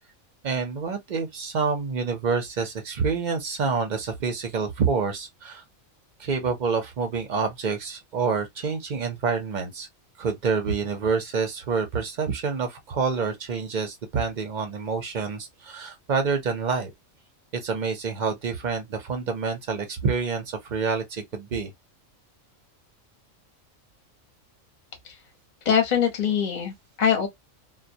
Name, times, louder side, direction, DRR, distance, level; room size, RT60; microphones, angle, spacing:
voice 1, 0.4-5.6 6.2-9.9 10.2-16.9 17.5-21.7, right 5 dB, 55° right, 0.5 m, -27 dB
voice 2, 25.6-27.3, left 7 dB, 40° left, 0.7 m, -23 dB
2.2 x 2.1 x 2.6 m
omnidirectional pair, 1.4 m